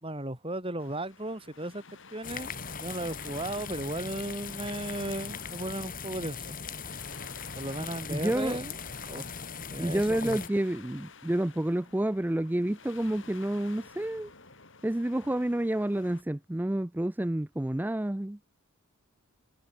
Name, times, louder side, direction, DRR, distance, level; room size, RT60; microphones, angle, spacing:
voice 1, 0.0-1.8 2.1-2.5 2.8-6.6 7.5-8.8 9.1-9.3 9.7-10.4, right 1 dB, 25° right, 3.9 m, -35 dB
sound 1, 0.8-16.2, left 4 dB, 60° left, 5.4 m, -52 dB
sound 2, 2.2-10.5, left 5 dB, 40° left, 4.0 m, -39 dB
voice 2, 8.1-8.6 9.8-14.3 14.8-18.4, right 1 dB, 10° right, 0.4 m, -29 dB
head